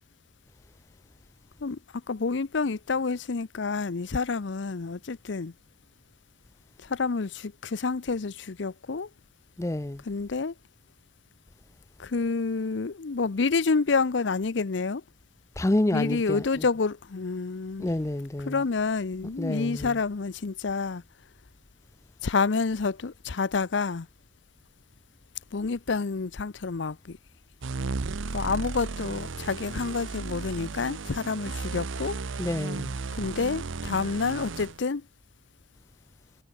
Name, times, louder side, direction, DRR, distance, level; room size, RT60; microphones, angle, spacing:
voice 1, 2.1-5.5 6.8-9.1 10.0-10.5 12.0-15.0 15.9-17.9 18.4-21.0 22.2-24.1 25.5-27.2 28.3-32.2 33.2-35.0, left 4 dB, 70° left, 0.6 m, -28 dB
voice 2, 9.6-10.0 15.6-16.4 17.8-18.6 19.4-19.9 32.4-32.9, left 1 dB, 15° left, 0.4 m, -28 dB
sound 1, 27.6-34.8, right 4 dB, 90° right, 0.8 m, -34 dB
head